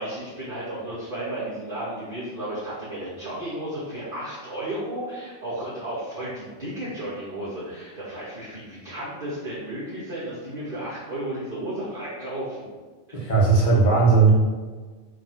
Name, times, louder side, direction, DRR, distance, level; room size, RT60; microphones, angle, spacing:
voice 1, 0.0-12.7 13.1-13.3, right 1 dB, 45° right, -11 dB, 2.5 m, -33 dB
voice 2, 13.1-14.3, right 4 dB, 40° left, -3 dB, 1.8 m, -17 dB
8.2 x 3.6 x 6.2 m, 1.4 s
omnidirectional pair, 1.3 m